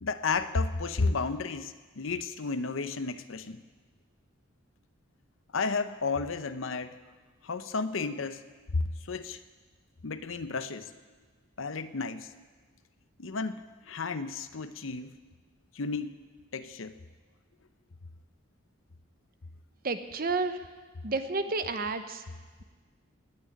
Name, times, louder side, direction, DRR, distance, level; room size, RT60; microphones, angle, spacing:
voice 1, 0.0-3.6 5.5-7.0 7.4-8.4 8.7-9.4 10.0-10.9 11.6-12.3 13.2-15.2 15.7-16.1 16.5-16.9, left 4 dB, 80° left, 11 dB, 0.8 m, -32 dB
voice 2, 19.8-20.6 21.0-22.2, right 3 dB, 45° right, 9 dB, 0.9 m, -31 dB
18.5 x 6.5 x 9.9 m, 1.4 s
head